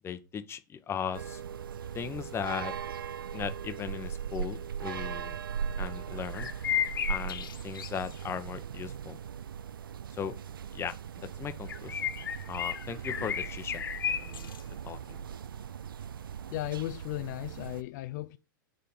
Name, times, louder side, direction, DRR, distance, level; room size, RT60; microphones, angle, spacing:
voice 1, 0.0-1.4 1.9-2.7 3.3-5.4 5.8-6.5 7.1-9.2 10.2-10.3 10.7-12.0 12.5-14.5 14.8-15.2, left 7 dB, 20° left, 0.8 m, -38 dB
sound 1, 1.1-17.8, right 8 dB, 90° right, 0.4 m, -39 dB
sound 2, 6.3-8.2 11.7-14.6, left 9 dB, 80° left, 1.0 m, -33 dB
voice 2, 16.5-18.4, left 17 dB, 55° left, 0.4 m, -35 dB
6.9 x 3.7 x 5.4 m
hypercardioid pair, 110°, 11 cm